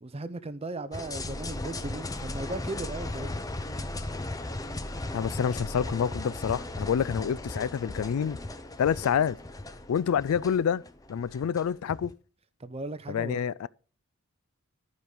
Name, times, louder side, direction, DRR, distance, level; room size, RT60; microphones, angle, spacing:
voice 1, 0.0-3.4 5.1-5.3 12.6-13.4, right 2 dB, 25° right, 0.6 m, -37 dB
sound 1, 0.9-12.1, left 2 dB, 15° left, 0.6 m, -37 dB
voice 2, 5.1-8.4 8.8-9.4 9.9-10.8 11.1-12.1 13.1-13.7, left 7 dB, 70° left, 0.3 m, -27 dB
12.0 x 5.2 x 4.9 m
head